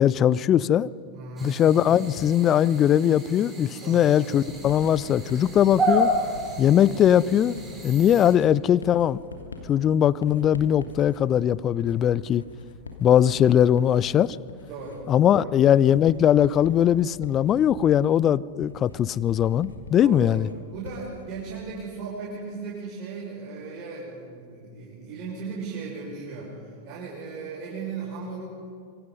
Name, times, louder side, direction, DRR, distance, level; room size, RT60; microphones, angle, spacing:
voice 1, 0.0-0.9 1.4-6.1 6.6-7.6 7.8-9.2 9.7-12.4 13.0-14.4 15.1-20.5, left 10 dB, 30° left, 21 dB, 0.5 m, -20 dB
voice 2, 1.1-1.6 3.8-4.1 14.7-15.0 15.3-15.5 20.0-20.4 20.7-28.4, right 4 dB, 40° right, -6 dB, 6.5 m, -37 dB
sound 1, 1.4-8.3, right 1 dB, 15° right, 5.6 m, -31 dB
Writing, 4.5-21.8, left 3 dB, 75° left, 2.7 m, -44 dB
26.0 x 25.0 x 5.4 m, 2.2 s
figure-of-eight pair, 90°, 0 cm